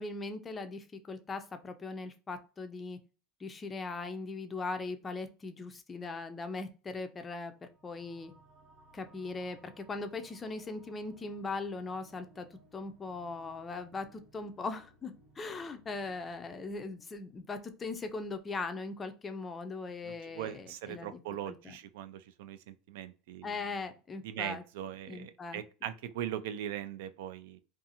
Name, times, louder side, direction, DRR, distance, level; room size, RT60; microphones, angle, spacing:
voice 1, 0.0-3.0 3.4-8.3 8.9-21.2 21.5-21.7 23.4-24.6 25.1-25.6, left 3 dB, 20° left, 0.3 m, -40 dB
sound 1, 7.5-18.5, right 2 dB, 40° right, 0.7 m, -63 dB
voice 2, 20.0-23.5 24.2-27.6, right 11 dB, 85° right, 0.3 m, -40 dB
2.5 x 2.3 x 2.7 m
supercardioid pair, 150°, 0 cm